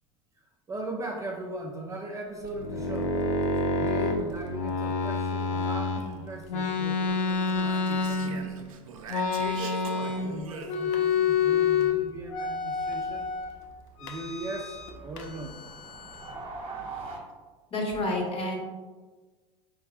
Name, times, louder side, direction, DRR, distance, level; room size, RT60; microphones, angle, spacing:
voice 1, 0.4-3.3 3.7-8.7 9.4-13.3 14.0-15.6, right 2 dB, 20° right, 0 dB, 0.5 m, -39 dB
sound 1, 2.4-6.0 6.5-8.6 9.1-10.4 10.6-11.9 12.3-13.5 14.0-14.9 15.2-16.4, left 4 dB, 70° left, 0.6 m, -28 dB
Speech, 7.3-11.2, right 6 dB, 80° right, 0.4 m, -43 dB
sound 2, 11.7-17.2, right 3 dB, 35° right, 1.1 m, -44 dB
voice 2, 17.7-18.6, left 1 dB, 30° left, 0 dB, 1.1 m, -29 dB
4.2 x 3.8 x 2.3 m, 1.3 s
hypercardioid pair, 90°, 17 cm